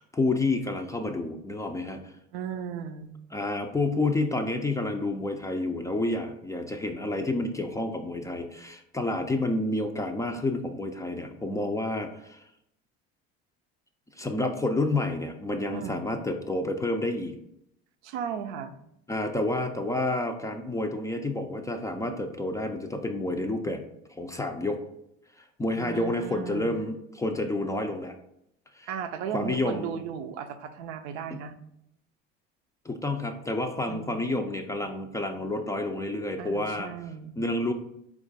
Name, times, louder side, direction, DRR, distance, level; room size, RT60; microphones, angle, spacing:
voice 1, 0.0-2.1 3.3-12.4 14.2-17.4 19.1-23.8 24.2-24.8 25.4-28.1 28.7-28.9 29.3-30.0 31.3-31.4 32.8-36.9 37.4-37.7, left 2 dB, 10° left, 5 dB, 0.3 m, -29 dB
voice 2, 2.3-3.2 15.7-16.1 18.0-18.8 25.7-26.8 28.9-31.5 33.9-34.3 36.4-37.4, right 8 dB, 85° right, 8 dB, 0.5 m, -36 dB
4.4 x 2.4 x 3.9 m, 0.78 s
supercardioid pair, 80°, 33 cm